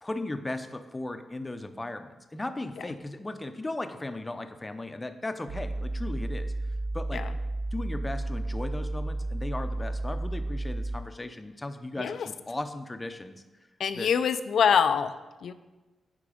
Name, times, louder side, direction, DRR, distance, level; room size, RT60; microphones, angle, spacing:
voice 1, 0.0-6.5 6.9-7.3 7.7-13.4 13.9-14.1, left 2 dB, 20° left, 9 dB, 0.6 m, -36 dB
sound 1, 5.5-11.0, right 2 dB, 55° right, 0.6 m, -32 dB
voice 2, 13.8-15.1 15.4-15.5, left 7 dB, 75° left, 12 dB, 0.4 m, -24 dB
8.7 x 4.6 x 5.0 m, 1.2 s
cardioid pair, 70°, 0 cm